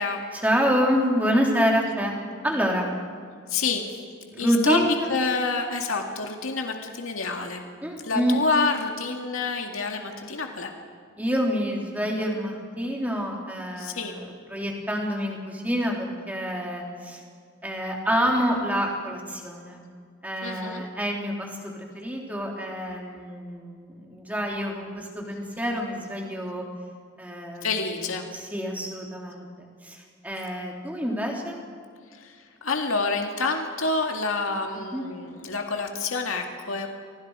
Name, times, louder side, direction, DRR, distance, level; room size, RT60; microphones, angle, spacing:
voice 1, 0.3-2.1 2.4-2.9 4.3-5.0 7.8-8.4 11.2-14.2 14.5-17.2 17.6-19.8 20.2-26.6 27.2-27.7 28.3-29.5 29.8-31.6 34.9-35.0, equal, 5° right, -1 dB, 3.4 m, -27 dB
voice 2, 3.5-4.0 4.3-4.8 5.1-7.6 8.0-10.7 13.8-14.2 20.4-20.8 27.6-28.3 32.1-36.9, left 3 dB, 75° left, 3 dB, 2.1 m, -28 dB
30.0 x 23.5 x 4.9 m, 2.1 s
head